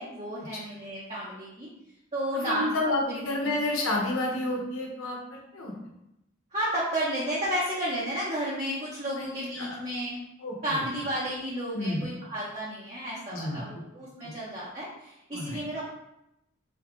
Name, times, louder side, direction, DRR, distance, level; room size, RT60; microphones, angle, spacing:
voice 1, 0.0-1.7 2.1-2.7 3.1-3.5 6.5-10.2 10.6-15.8, equal, 30° right, -7 dB, 0.9 m, -32 dB
voice 2, 2.3-5.7 9.2-9.3 9.6-9.8 10.4-10.8 11.7-12.0 13.3-13.6 14.2-14.3 15.3-15.6, left 2 dB, 90° left, -1 dB, 1.2 m, -30 dB
4.2 x 3.9 x 3.1 m, 0.86 s
head